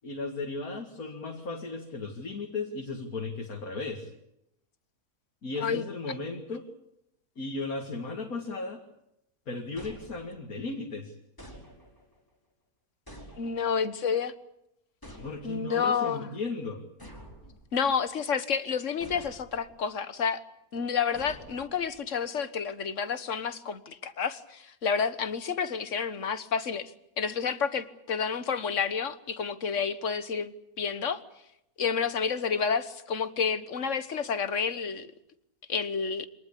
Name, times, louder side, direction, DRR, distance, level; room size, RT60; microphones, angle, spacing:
voice 1, 0.0-4.1 5.4-6.7 7.4-8.8 9.5-11.1 15.2-16.8, left 3 dB, 80° left, 1 dB, 2.7 m, -35 dB
sound 1, 9.8-10.6 11.4-12.2 13.1-13.9 15.0-15.8 17.0-18.0 19.0-19.8 21.1-22.1, equal, 15° left, 4.8 m, -49 dB
voice 2, 13.4-14.3 15.4-16.3 17.7-20.4 20.7-26.9 27.2-31.2 31.8-35.1 35.7-36.3, left 6 dB, 60° left, 12 dB, 1.7 m, -30 dB
25.5 x 19.0 x 8.6 m, 0.81 s
omnidirectional pair, 1.5 m